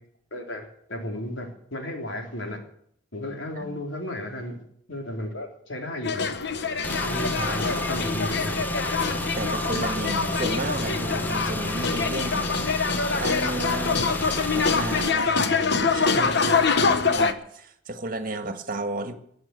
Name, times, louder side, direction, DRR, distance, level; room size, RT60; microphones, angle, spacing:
voice 1, 0.3-2.6 3.1-4.6 4.9-6.4 7.0-8.6 12.9-13.2 16.2-17.1, left 1 dB, 80° left, 2 dB, 3.5 m, -34 dB
sound 1, 6.0-17.3, left 4 dB, 60° left, 1.1 m, -25 dB
Car / Engine, 6.8-15.1, left 1 dB, 10° left, 0.8 m, -31 dB
voice 2, 9.4-12.7 13.2-14.1 14.5-15.3 15.8-16.6 17.1-19.1, right 2 dB, 45° right, 8 dB, 1.7 m, -33 dB
19.5 x 7.9 x 7.9 m, 0.69 s
head